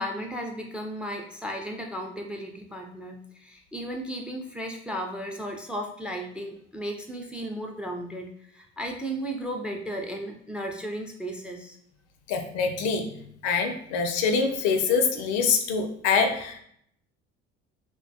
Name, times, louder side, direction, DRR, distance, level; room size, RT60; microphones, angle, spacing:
voice 1, 0.0-11.8, equal, 5° right, 2 dB, 0.3 m, -35 dB
voice 2, 12.3-13.1 13.4-16.6, left 5 dB, 70° left, 5 dB, 0.5 m, -25 dB
2.2 x 2.2 x 2.6 m, 0.67 s
hypercardioid pair, 65°, 32 cm